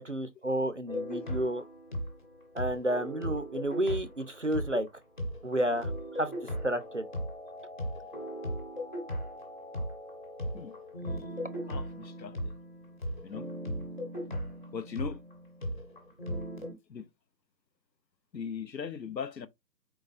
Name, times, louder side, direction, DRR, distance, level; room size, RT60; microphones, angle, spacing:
voice 1, 0.0-1.6 2.5-4.8 5.4-6.3 6.6-7.1, right 1 dB, 50° right, 0.5 m, -31 dB
sound 1, 0.9-4.9 5.2-16.7, equal, 30° left, 1.2 m, -37 dB
sound 2, 6.2-11.1, left 2 dB, 45° left, 0.5 m, -47 dB
voice 2, 11.7-12.5 13.2-13.5 14.7-15.2 16.9-17.1 18.3-19.5, left 7 dB, 85° left, 0.8 m, -39 dB
4.6 x 3.9 x 2.5 m
figure-of-eight pair, 165°, 50 cm